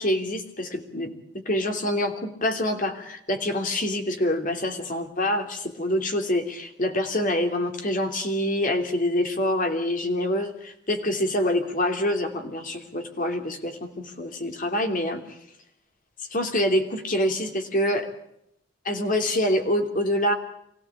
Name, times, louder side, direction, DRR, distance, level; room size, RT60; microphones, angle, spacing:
voice 1, 0.0-15.2 16.2-18.1 18.8-20.3, left 1 dB, 45° left, 5 dB, 3.1 m, -26 dB
25.0 x 16.5 x 8.5 m, 0.77 s
head